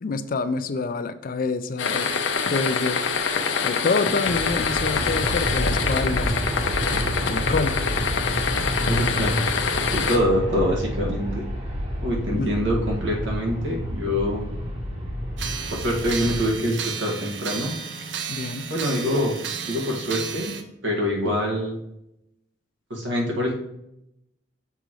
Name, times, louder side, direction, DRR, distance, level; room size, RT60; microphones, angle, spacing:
voice 1, 0.0-2.1 2.5-3.0 3.6-6.5 6.9-7.9 12.3-12.6 18.3-18.7, left 3 dB, 50° left, 12 dB, 0.4 m, -27 dB
sound 1, 1.8-10.2, left 5 dB, 90° left, 0.8 m, -25 dB
Aircraft, 4.2-16.4, equal, 35° right, 1.2 m, -29 dB
voice 2, 8.8-9.4 9.9-11.4 12.0-14.5 15.7-17.7 18.7-19.4 19.7-20.5 20.8-21.8 22.9-23.6, equal, 85° right, -2 dB, 1.8 m, -25 dB
sound 2, 15.4-20.6, right 6 dB, 70° right, 0.7 m, -33 dB
6.7 x 5.0 x 3.1 m, 0.83 s
head